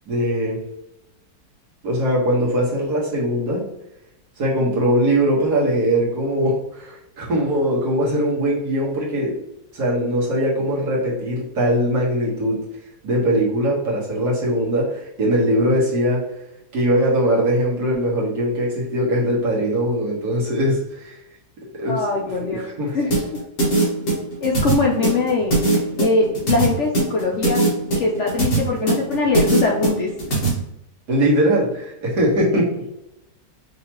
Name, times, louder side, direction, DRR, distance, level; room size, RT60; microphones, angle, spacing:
voice 1, 0.1-0.6 1.8-3.6 4.4-9.3 9.7-12.6 13.0-16.2 16.7-21.2 21.8-22.0 22.4-23.0 31.1-32.7, equal, 65° right, -5 dB, 1.9 m, -21 dB
voice 2, 21.8-22.7 22.9-23.4 24.4-25.5 26.0-27.6 28.0-30.1, left 3 dB, 70° left, -1 dB, 0.7 m, -21 dB
sound 1, 23.1-30.5, right 2 dB, 50° left, 1.8 m, -20 dB
5.5 x 2.9 x 2.9 m, 0.85 s
omnidirectional pair, 1.9 m